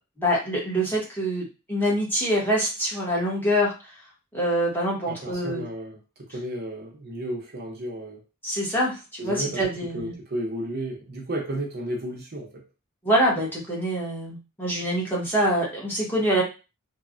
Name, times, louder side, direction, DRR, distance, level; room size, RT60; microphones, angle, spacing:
voice 1, 0.2-3.9 4.3-5.7 8.4-10.1 13.0-16.4, equal, 10° left, -5 dB, 0.9 m, -25 dB
voice 2, 5.1-6.0 6.3-8.2 9.2-9.6 9.9-12.6, right 1 dB, 45° right, 0 dB, 0.6 m, -32 dB
3.1 x 2.0 x 2.4 m, 0.30 s
head